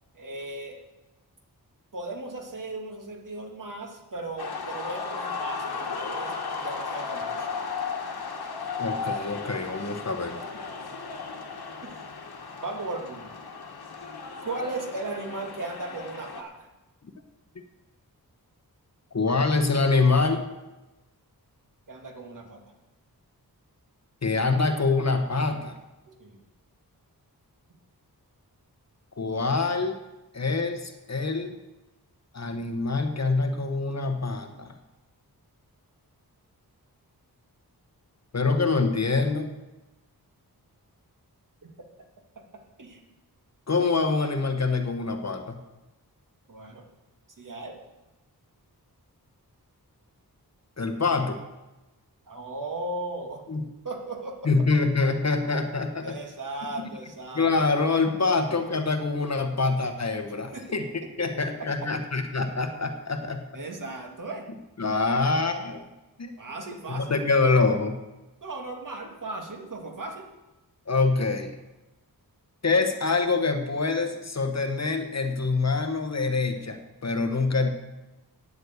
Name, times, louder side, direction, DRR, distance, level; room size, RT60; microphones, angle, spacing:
voice 1, 0.1-0.8 1.9-6.4 6.6-7.5 11.8-11.9 12.6-13.3 14.4-16.7 21.9-22.6 26.1-26.4 42.4-43.0 46.5-46.9 47.4-47.8 52.3-53.4 53.8-54.8 56.0-57.5 60.5-60.7 61.2-61.3 61.6-61.7 63.5-64.5 66.4-67.2 68.4-70.3, right 2 dB, 55° right, 2 dB, 2.0 m, -36 dB
sound 1, 4.4-16.4, left 4 dB, 75° left, 1.5 m, -35 dB
voice 2, 8.8-10.4 19.1-20.4 24.2-25.7 29.2-30.0 30.3-31.5 32.3-34.7 38.3-39.5 43.7-45.6 50.8-51.4 53.5-53.6 54.4-56.0 57.3-63.4 64.8-65.8 66.2-66.3 66.9-68.0 70.9-71.6 72.6-77.7, left 3 dB, 45° left, 6 dB, 1.1 m, -25 dB
9.5 x 7.7 x 8.1 m, 1.0 s
wide cardioid pair, 110°, 38 cm